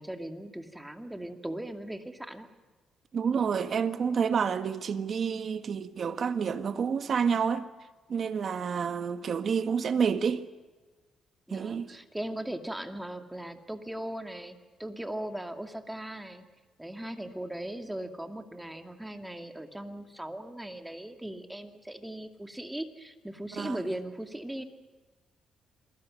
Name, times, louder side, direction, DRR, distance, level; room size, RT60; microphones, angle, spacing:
voice 1, 0.0-2.5 11.5-16.5 16.8-24.6, right 1 dB, 5° right, 2.4 m, -38 dB
voice 2, 3.1-7.7 8.1-10.4 11.5-11.9 23.6-23.8, right 6 dB, 50° right, 1.5 m, -29 dB
28.0 x 22.5 x 6.5 m
cardioid pair, 90°, 0 cm